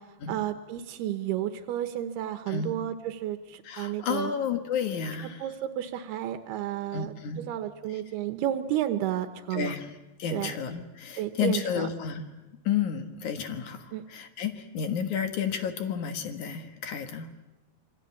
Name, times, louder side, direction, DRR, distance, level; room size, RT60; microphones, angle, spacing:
voice 1, 0.3-4.3 5.4-9.8 10.3-10.5 11.2-11.9 13.9-14.0, right 12 dB, 85° right, 9 dB, 3.1 m, -32 dB
voice 2, 3.6-5.5 6.9-7.4 7.9-8.0 9.5-9.9 10.2-12.3 12.6-17.3, left 7 dB, 60° left, 7 dB, 2.5 m, -31 dB
27.0 x 23.0 x 8.5 m, 1.0 s
omnidirectional pair, 4.6 m